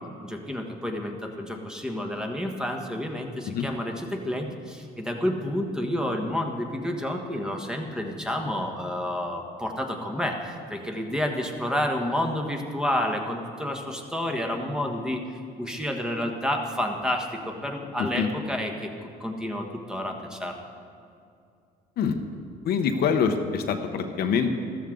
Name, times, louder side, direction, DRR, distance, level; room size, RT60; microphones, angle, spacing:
voice 1, 0.2-15.2 15.6-20.6, left 1 dB, 5° right, 2 dB, 1.3 m, -30 dB
voice 2, 22.6-24.5, left 6 dB, 65° left, 6 dB, 1.0 m, -25 dB
14.0 x 13.5 x 3.8 m, 2.5 s
cardioid pair, 110°, 17 cm